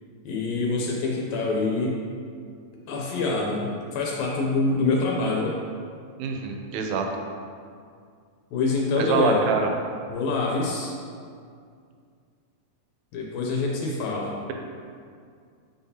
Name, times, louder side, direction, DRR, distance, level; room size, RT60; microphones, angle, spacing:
voice 1, 0.2-2.0 2.9-5.6 8.5-9.4 10.1-11.0 13.1-14.4, left 3 dB, 80° left, -2 dB, 2.0 m, -25 dB
voice 2, 6.2-7.1 9.0-9.7, right 5 dB, 80° right, 3 dB, 1.8 m, -25 dB
8.3 x 4.1 x 2.8 m, 2.2 s
omnidirectional pair, 3.3 m